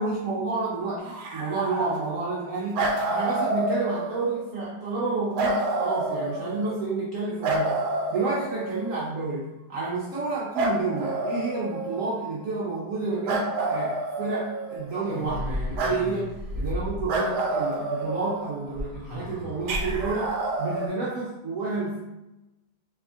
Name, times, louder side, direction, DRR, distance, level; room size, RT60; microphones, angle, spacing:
voice 1, 0.0-7.8 8.1-22.0, right 3 dB, 55° right, -7 dB, 1.1 m, -30 dB
sound 1, 1.0-2.4 2.7-4.4 5.3-6.8 7.4-9.0 10.6-12.2 13.3-14.9 15.8-16.0 17.1-18.7 19.7-20.9, right 2 dB, 75° right, 1.2 m, -28 dB
sound 2, 14.9-17.3 18.7-20.2, left 1 dB, 25° left, 1.2 m, -33 dB
3.8 x 3.5 x 3.5 m, 0.99 s
omnidirectional pair, 1.9 m